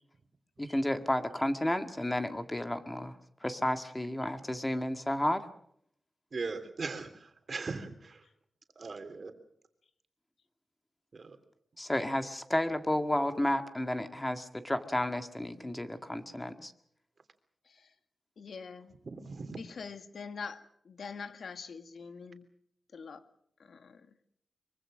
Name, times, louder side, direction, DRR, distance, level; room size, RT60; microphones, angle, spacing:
voice 1, 0.6-3.1 3.4-5.4 11.8-16.7, left 1 dB, 15° left, 8 dB, 1.8 m, -32 dB
voice 2, 6.3-8.2 8.8-9.3 11.1-11.4 19.0-19.6, right 4 dB, 50° right, 7 dB, 3.1 m, -39 dB
voice 3, 17.6-17.9 18.4-19.0 19.5-22.5 22.9-23.2 23.6-24.2, left 5 dB, 75° left, 10 dB, 1.7 m, -44 dB
24.0 x 24.0 x 6.3 m, 0.70 s
wide cardioid pair, 115°, 0 cm